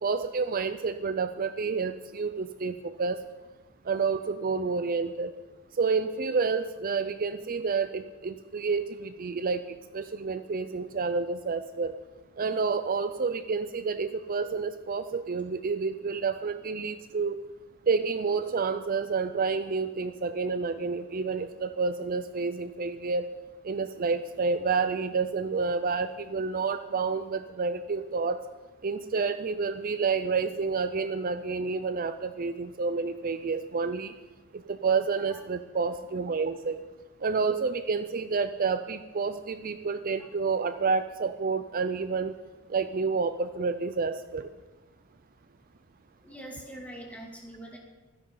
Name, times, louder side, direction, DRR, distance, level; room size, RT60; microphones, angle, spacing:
voice 1, 0.0-3.2 3.9-5.3 5.8-11.9 12.4-17.4 17.9-23.3 23.6-28.4 28.8-34.1 34.7-36.8 37.2-42.3 42.7-44.5, right 4 dB, 40° right, 11 dB, 0.5 m, -29 dB
voice 2, 46.2-47.8, right 1 dB, 5° left, -1 dB, 2.6 m, -43 dB
24.5 x 10.5 x 3.9 m, 1.3 s
head